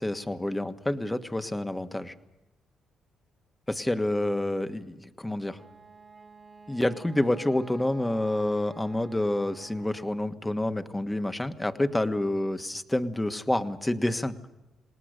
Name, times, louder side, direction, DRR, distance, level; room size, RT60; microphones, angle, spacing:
voice 1, 0.0-2.1 3.7-5.6 6.7-14.3, left 1 dB, 10° left, 8 dB, 1.4 m, -28 dB
Wind instrument woodwind instrument, 5.3-10.3, right 3 dB, 30° right, 1.9 m, -50 dB
28.5 x 19.0 x 6.6 m, 0.95 s
cardioid pair, 90°, 0 cm